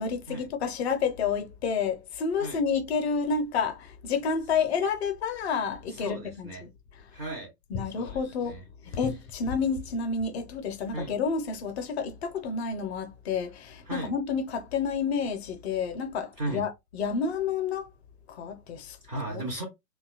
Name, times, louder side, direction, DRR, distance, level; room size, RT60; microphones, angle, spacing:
voice 1, 0.0-6.7 7.7-8.6 8.9-17.9 18.3-19.0 19.3-19.4, left 5 dB, 45° left, 0.5 m, -30 dB
voice 2, 5.9-6.6 7.1-7.5 8.0-9.0 10.9-11.1 13.9-14.1 16.4-16.6 19.0-19.6, right 2 dB, 15° right, 0.4 m, -36 dB
2.7 x 2.2 x 2.3 m
figure-of-eight pair, 110°, 48 cm